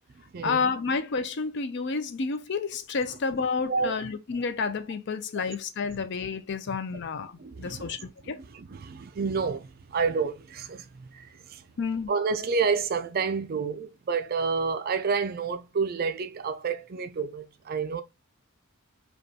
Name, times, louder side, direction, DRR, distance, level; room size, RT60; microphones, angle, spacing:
voice 1, 0.4-7.3 7.6-8.4 11.8-12.1, left 5 dB, 55° left, 0.4 m, -30 dB
voice 2, 7.4-8.1 8.4-11.6 12.1-18.0, right 5 dB, 45° right, 0.4 m, -29 dB
5.2 x 2.3 x 2.7 m
head